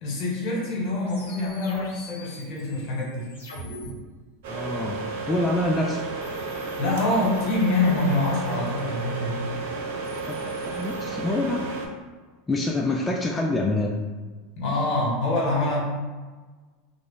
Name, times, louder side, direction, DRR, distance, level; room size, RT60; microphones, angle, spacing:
voice 1, 0.0-3.3 6.8-9.5 14.6-15.8, left 2 dB, 55° left, -4 dB, 1.2 m, -25 dB
sound 1, 1.1-3.9 6.2-9.0 9.8-11.1, left 1 dB, 80° left, 0.7 m, -45 dB
sound 2, 4.4-11.9, right 3 dB, 70° right, 0.4 m, -32 dB
voice 2, 4.5-5.0 5.3-6.0 10.2-11.7 12.5-13.9, left 2 dB, 15° left, -1 dB, 0.3 m, -26 dB
2.3 x 2.1 x 3.6 m, 1.4 s
hypercardioid pair, 90°, 0 cm